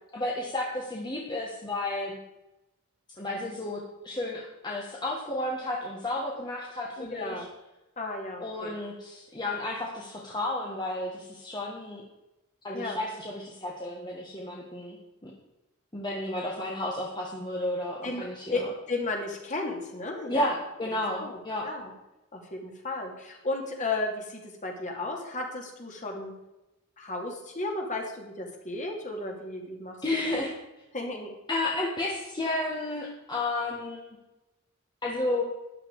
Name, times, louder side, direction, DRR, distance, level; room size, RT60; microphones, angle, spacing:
voice 1, 0.1-2.2 3.2-7.4 8.4-12.0 12.6-15.0 15.2-15.3 15.9-18.7 20.3-21.7 30.0-30.5 31.5-34.0 35.0-35.4, left 2 dB, 20° left, -2 dB, 1.6 m, -32 dB
voice 2, 7.0-7.5 8.0-8.8 12.7-13.0 18.0-18.3 18.5-20.5 21.2-21.4 21.6-21.9 22.3-26.3 27.0-30.0 30.2-30.4 30.9-31.3, left 2 dB, 35° left, 1 dB, 2.7 m, -34 dB
12.5 x 10.5 x 4.8 m, 0.98 s
head